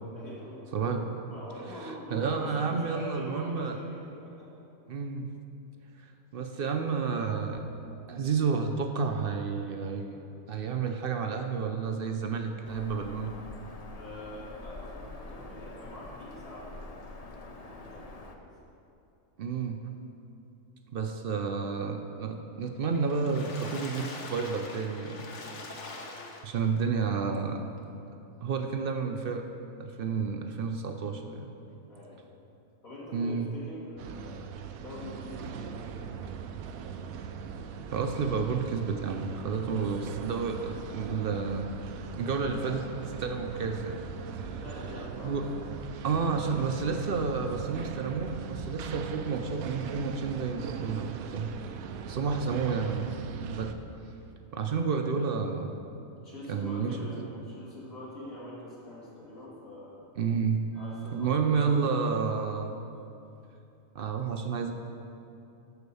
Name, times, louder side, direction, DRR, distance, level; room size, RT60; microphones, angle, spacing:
voice 1, 0.1-0.7 1.3-4.5 13.9-18.5 31.9-32.2 32.8-37.0 44.4-45.3 51.5-51.8 56.1-60.0 60.7-61.7, left 1 dB, 80° left, -9 dB, 2.9 m, -44 dB
voice 2, 0.7-1.1 1.8-3.8 4.9-5.3 6.3-7.7 8.1-10.1 10.5-13.3 19.4-19.8 20.9-25.3 26.4-27.7 28.4-29.5 29.8-31.5 33.1-33.5 37.9-41.7 42.1-44.0 44.4-44.6 45.2-45.4 46.0-51.5 52.0-53.7 54.5-55.8 56.5-57.1 60.2-60.7 61.1-62.7 63.9-64.7, right 5 dB, 55° right, 5 dB, 0.7 m, -30 dB
Bird vocalization bird call bird song, 12.6-18.4, left 2 dB, 45° left, 0.5 m, -45 dB
Water / Splash splatter, 22.9-26.8 27.3-27.4 27.8-27.9, left 2 dB, 60° left, 1.3 m, -43 dB
sound 1, 34.0-53.8, right 6 dB, 90° right, 1.0 m, -40 dB
11.5 x 4.4 x 6.8 m, 2.7 s
omnidirectional pair, 1.4 m